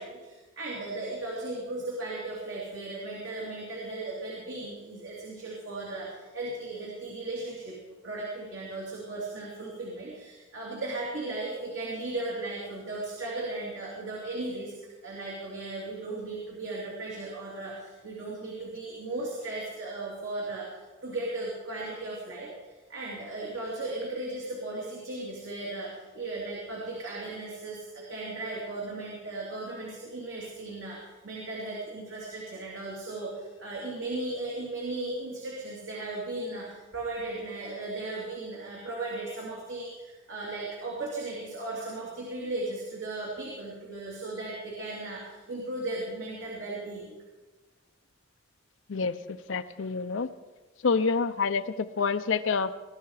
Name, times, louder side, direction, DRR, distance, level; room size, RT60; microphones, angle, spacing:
voice 1, 0.0-7.8 8.0-14.7 15.0-47.2, right 2 dB, 75° right, -4 dB, 2.9 m, -36 dB
voice 2, 49.5-50.3 50.8-52.7, left 5 dB, 75° left, 10 dB, 0.6 m, -27 dB
21.0 x 12.5 x 4.8 m, 1.3 s
head